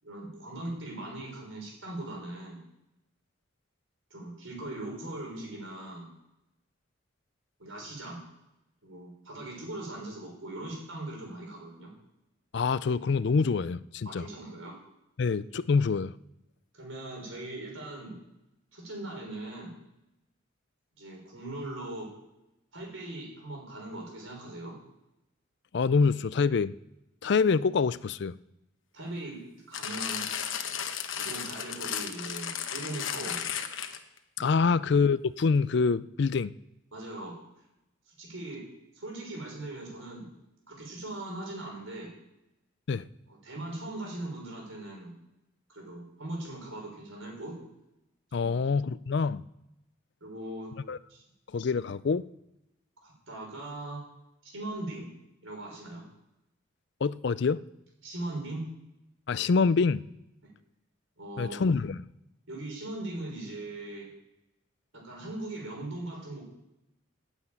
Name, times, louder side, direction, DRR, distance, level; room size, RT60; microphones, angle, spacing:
voice 1, 0.0-2.6 4.1-6.1 7.6-8.2 8.8-11.9 14.1-14.7 16.7-18.2 18.7-19.7 21.0-22.1 22.7-24.8 28.9-30.2 31.2-33.4 36.9-37.3 38.1-38.6 38.9-40.3 40.7-42.1 43.3-45.2 45.7-47.6 48.4-48.9 50.2-50.7 51.1-51.2 53.0-54.0 54.4-55.1 55.4-56.0 58.0-58.6 61.2-61.6 62.5-64.1 64.9-66.4, right 2 dB, 80° right, -1 dB, 5.3 m, -40 dB
voice 2, 12.5-14.3 15.2-16.1 25.7-26.7 27.2-28.3 34.4-36.5 42.9-43.1 48.3-49.4 50.9-51.0 51.5-52.2 57.0-57.6 59.3-60.0 61.4-62.0, left 5 dB, 55° left, 17 dB, 0.4 m, -26 dB
sound 1, 29.7-34.2 34.9-35.0, left 8 dB, 70° left, 1.0 m, -34 dB
9.6 x 8.2 x 8.9 m, 0.90 s
head